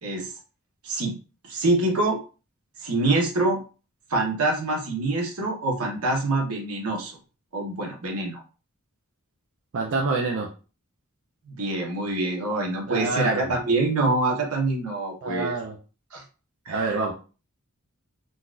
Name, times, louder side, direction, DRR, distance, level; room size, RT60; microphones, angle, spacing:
voice 1, 0.8-1.2 1.5-2.2 2.8-3.6 4.1-7.2 7.5-8.4 11.5-15.5 16.1-16.2 16.7-17.0, right 2 dB, 80° right, -1 dB, 1.1 m, -25 dB
voice 2, 9.7-10.5 12.9-13.6 15.2-15.8 16.7-17.1, right 3 dB, 60° right, 0 dB, 0.5 m, -27 dB
3.9 x 2.4 x 2.4 m, 0.35 s
head